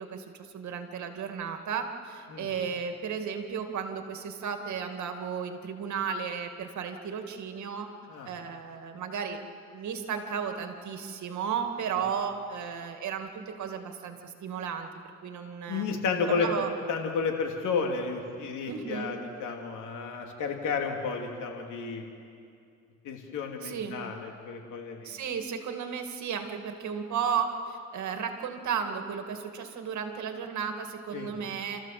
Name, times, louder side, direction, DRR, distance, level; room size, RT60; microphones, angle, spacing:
voice 1, 0.0-7.9 8.3-9.4 9.7-14.9 15.2-15.9 16.3-16.7 18.7-19.2 23.6-24.0 25.0-31.8, right 7 dB, 70° right, 6 dB, 2.2 m, -34 dB
voice 2, 15.7-16.5 16.9-22.0 23.0-25.1 31.1-31.3, left 5 dB, 80° left, 2 dB, 3.1 m, -32 dB
29.5 x 14.0 x 7.6 m, 2.4 s
cardioid pair, 90°, 30 cm